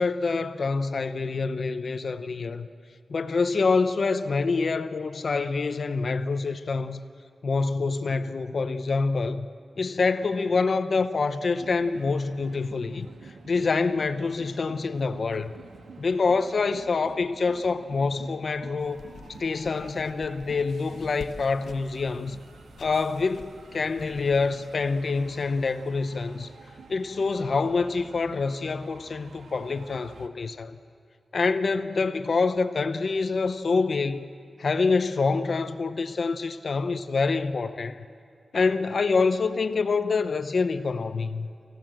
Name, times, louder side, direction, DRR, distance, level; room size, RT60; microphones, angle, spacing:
voice 1, 0.0-2.7 3.1-7.0 7.4-9.5 9.8-15.5 16.0-19.0 19.4-22.4 22.8-26.5 26.9-30.8 31.3-34.3 34.6-38.0 38.5-41.5, left 4 dB, 50° left, 10 dB, 0.8 m, -26 dB
sound 1, 11.6-30.3, right 4 dB, 80° right, 1.3 m, -49 dB
Writing with a pen, 18.8-24.5, left 5 dB, 80° left, 0.9 m, -47 dB
27.5 x 15.5 x 7.7 m, 2.5 s
wide cardioid pair, 135°, 0 cm